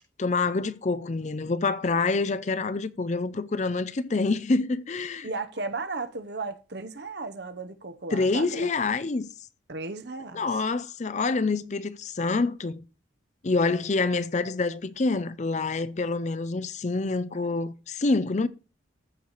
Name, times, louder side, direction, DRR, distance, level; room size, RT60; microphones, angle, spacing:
voice 1, 0.2-5.3 8.1-9.3 10.3-12.8 13.4-18.5, left 3 dB, 35° left, 0.5 m, -27 dB
voice 2, 5.2-8.7 9.7-10.5, right 3 dB, 60° right, 0.9 m, -35 dB
14.0 x 4.8 x 3.9 m
head